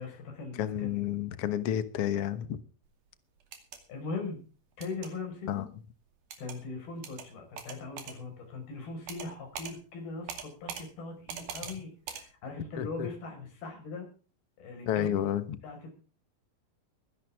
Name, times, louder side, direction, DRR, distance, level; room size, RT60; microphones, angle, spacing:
voice 1, 0.0-1.1 3.9-4.4 4.8-5.7 6.4-14.1 14.6-15.2 15.6-15.9, left 3 dB, 85° left, 5 dB, 7.0 m, -40 dB
voice 2, 0.6-2.6 5.5-5.6 12.8-13.1 14.9-15.6, left 10 dB, 65° left, 13 dB, 1.5 m, -30 dB
sound 1, 3.4-3.8 4.8-5.1 6.3-6.6 7.0-7.3 7.6-8.2 9.1-9.3 9.6-9.7 10.3-10.8 11.3-11.8 12.1-12.2, right 7 dB, 85° right, 4.3 m, -41 dB
22.0 x 11.0 x 3.6 m, 0.36 s
omnidirectional pair, 4.2 m